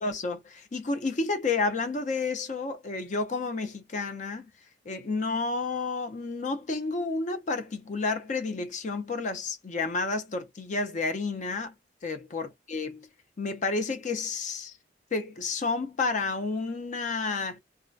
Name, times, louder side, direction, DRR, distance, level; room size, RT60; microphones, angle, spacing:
voice 1, 0.0-4.5 4.9-11.7 12.0-13.1 13.4-14.7 15.1-17.6, left 3 dB, 45° left, 0.5 m, -30 dB
2.3 x 2.1 x 2.5 m
head